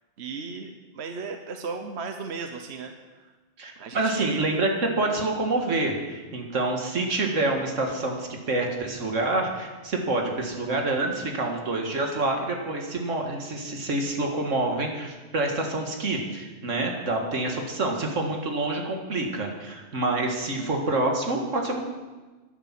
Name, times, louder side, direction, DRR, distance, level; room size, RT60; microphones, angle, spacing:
voice 1, 0.2-2.9 3.8-4.4 20.6-20.7, right 4 dB, 60° right, 5 dB, 1.2 m, -35 dB
voice 2, 3.6-21.9, right 2 dB, 85° right, 2 dB, 2.1 m, -27 dB
11.5 x 9.7 x 7.5 m, 1.3 s
omnidirectional pair, 1.3 m